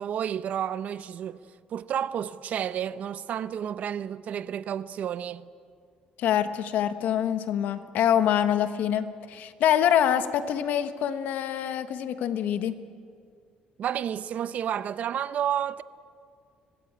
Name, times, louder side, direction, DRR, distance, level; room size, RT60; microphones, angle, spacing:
voice 1, 0.0-1.4 1.7-5.5 13.8-15.8, right 9 dB, 55° right, 0.7 m, -31 dB
voice 2, 6.2-12.8, left 10 dB, 75° left, 1.3 m, -25 dB
25.0 x 18.0 x 8.9 m
cardioid pair, 125°, 3 cm